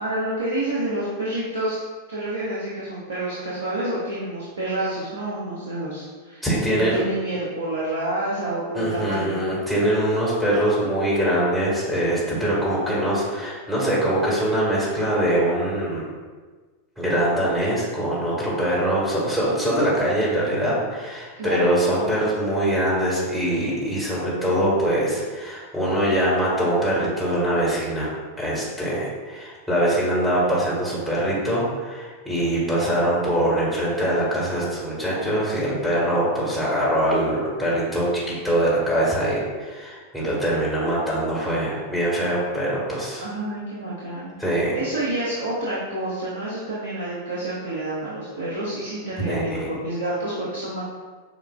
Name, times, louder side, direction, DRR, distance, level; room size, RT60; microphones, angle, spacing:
voice 1, 0.0-1.8 2.1-9.3 21.4-21.6 43.2-44.3 44.7-50.8, right 1 dB, 70° right, -7 dB, 0.8 m, -28 dB
voice 2, 6.4-7.0 8.7-16.1 17.0-43.2 44.4-44.7 49.3-49.7, right 1 dB, 5° right, -8 dB, 1.4 m, -23 dB
6.9 x 2.4 x 2.4 m, 1.4 s
figure-of-eight pair, 90°, 0 cm